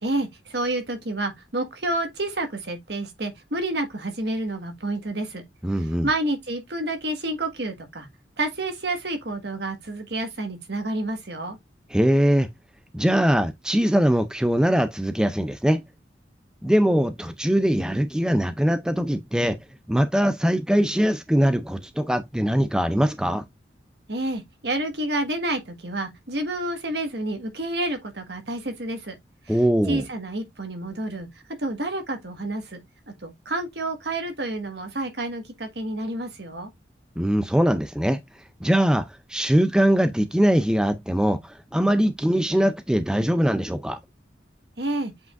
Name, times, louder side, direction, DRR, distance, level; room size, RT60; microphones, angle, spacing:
voice 1, 0.0-5.4 6.0-8.1 8.4-11.6 24.1-29.1 29.5-29.6 29.9-31.3 31.6-32.8 33.2-36.7 44.8-45.1, right 2 dB, 65° right, 1.6 m, -29 dB
voice 2, 5.6-6.1 11.9-12.5 12.9-15.8 16.6-19.6 19.9-23.4 29.5-30.1 37.2-38.2 38.6-39.0 39.3-44.0, equal, 5° right, 0.4 m, -21 dB
8.1 x 4.9 x 2.5 m
head